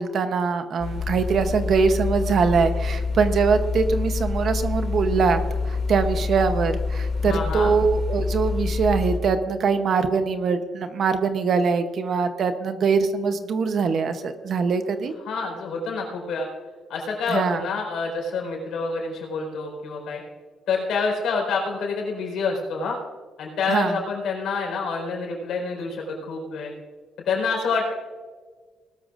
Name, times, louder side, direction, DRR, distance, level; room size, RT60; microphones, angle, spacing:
voice 1, 0.0-15.1 17.3-17.6 23.7-24.0, right 5 dB, 45° right, 9 dB, 0.8 m, -23 dB
sound 1, 0.8-9.2, left 4 dB, 35° left, 2.3 m, -27 dB
voice 2, 7.2-7.7 15.2-16.5 16.9-20.2 20.7-23.0 23.4-26.7 27.2-27.9, left 4 dB, 65° left, 1 dB, 4.5 m, -27 dB
19.5 x 13.0 x 2.5 m, 1.5 s
cardioid pair, 175°, 0 cm